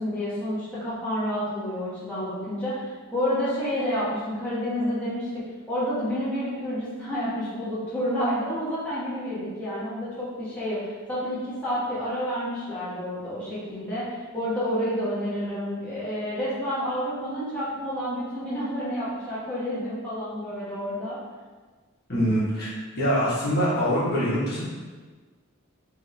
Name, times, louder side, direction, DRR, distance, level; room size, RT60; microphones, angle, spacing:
voice 1, 0.0-5.3 5.7-21.2, equal, 5° left, -12 dB, 1.4 m, -29 dB
voice 2, 22.1-24.6, equal, 50° left, -9 dB, 1.4 m, -24 dB
4.4 x 3.4 x 3.3 m, 1.4 s
head